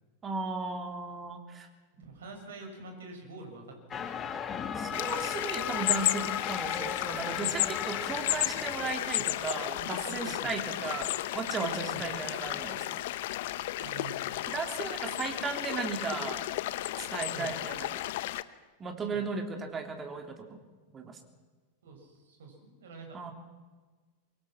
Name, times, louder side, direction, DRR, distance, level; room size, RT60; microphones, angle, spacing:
voice 1, 0.2-1.7 4.7-13.0 14.4-16.5 17.0-18.0 18.8-20.6 20.9-21.2 23.1-23.3, right 4 dB, 20° right, 5 dB, 3.4 m, -36 dB
voice 2, 2.0-4.3 9.2-9.3 9.9-10.6 11.9-12.1 13.8-14.5 17.3-17.6 19.1-19.3 21.8-23.2, right 3 dB, 65° right, 3 dB, 6.4 m, -46 dB
sound 1, 3.9-8.9, left 7 dB, 25° left, 1.9 m, -36 dB
sound 2, 4.9-18.4, left 16 dB, 55° left, 0.9 m, -33 dB
24.0 x 23.5 x 6.0 m, 1.3 s
figure-of-eight pair, 90°, 0 cm